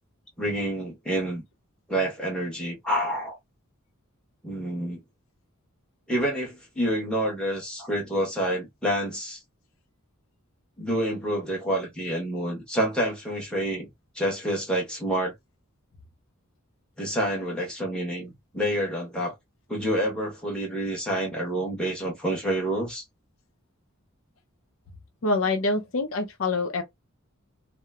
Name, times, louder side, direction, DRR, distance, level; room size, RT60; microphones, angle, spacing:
voice 1, 0.4-1.4 1.9-3.4 4.4-5.0 6.1-9.4 10.8-13.9 14.1-15.3 17.0-19.3 19.7-23.0, right 1 dB, 5° left, 1.1 m, -28 dB
voice 2, 25.2-26.8, left 3 dB, 70° left, 0.6 m, -25 dB
2.9 x 2.0 x 2.3 m
head